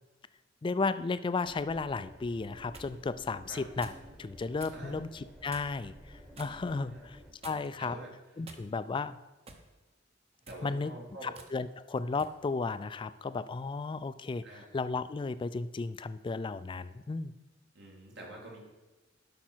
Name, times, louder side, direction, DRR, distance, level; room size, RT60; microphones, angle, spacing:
voice 1, 0.6-3.9 4.2-5.1 5.4-8.0 8.4-9.2 10.6-10.9 11.2-14.4 14.7-17.3, left 4 dB, 25° left, 14 dB, 0.3 m, -34 dB
sound 1, 1.4-7.3, equal, 5° right, 1.1 m, -53 dB
sound 2, 2.4-2.9 3.8-4.1 4.6-4.8 5.5-5.8 6.3-6.6 7.4-7.8 8.4-9.0 9.5-9.7 10.3-10.7 11.3-11.5 12.2-12.4, right 3 dB, 30° right, 0.9 m, -50 dB
voice 2, 6.7-7.0 7.5-8.1 10.5-11.3 14.4-14.7 17.7-18.6, right 1 dB, 60° right, -2 dB, 2.4 m, -47 dB
11.5 x 5.8 x 4.5 m, 1.2 s
head